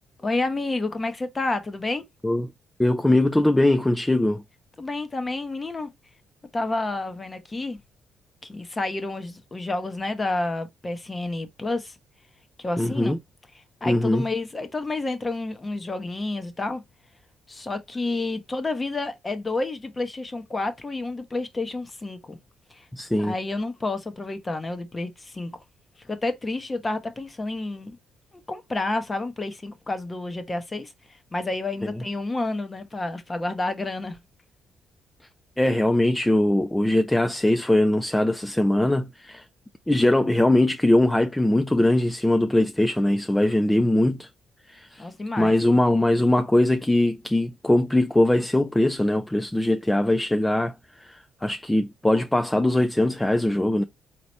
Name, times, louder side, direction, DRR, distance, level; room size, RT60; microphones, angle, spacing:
voice 1, 0.2-2.0 4.8-5.9 6.5-7.8 8.4-12.0 12.6-13.2 13.5-16.8 17.5-22.4 22.7-22.9 23.2-25.5 26.0-28.0 28.3-34.2 45.0-45.5, left 2 dB, 25° left, 0.9 m, -30 dB
voice 2, 2.8-4.4 12.8-13.2 13.9-14.3 22.9-23.3 35.6-39.4 39.9-44.3 44.7-45.1 45.4-50.7 51.1-53.8, left 1 dB, 10° left, 0.4 m, -21 dB
4.0 x 2.9 x 3.1 m
cardioid pair, 90°, 0 cm